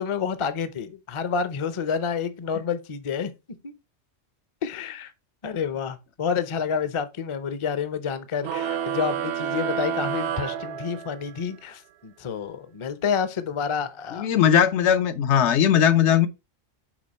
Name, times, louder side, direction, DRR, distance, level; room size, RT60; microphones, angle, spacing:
voice 1, 0.0-3.3 3.6-3.7 4.6-5.1 5.4-14.3, left 6 dB, 35° left, 0.5 m, -29 dB
sound 1, 8.4-11.4, right 8 dB, 65° right, 0.8 m, -29 dB
voice 2, 14.1-16.3, left 9 dB, 70° left, 0.9 m, -19 dB
6.1 x 4.3 x 4.1 m
omnidirectional pair, 1.3 m